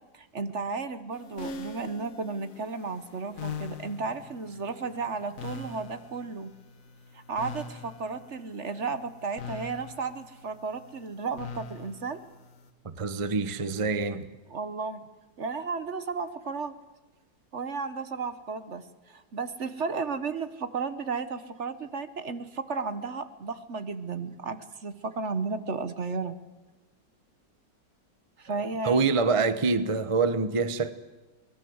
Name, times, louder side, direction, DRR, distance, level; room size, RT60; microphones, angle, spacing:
voice 1, 0.1-6.5 7.1-12.2 14.5-15.0 15.4-16.8 17.5-26.4 28.4-29.1, right 4 dB, 45° right, 1.3 m, -34 dB
sound 1, 1.1-12.7, left 5 dB, 50° left, 1.7 m, -43 dB
voice 2, 12.8-14.3 28.8-30.9, right 4 dB, 25° right, 0.8 m, -26 dB
24.5 x 19.5 x 7.9 m
omnidirectional pair, 1.8 m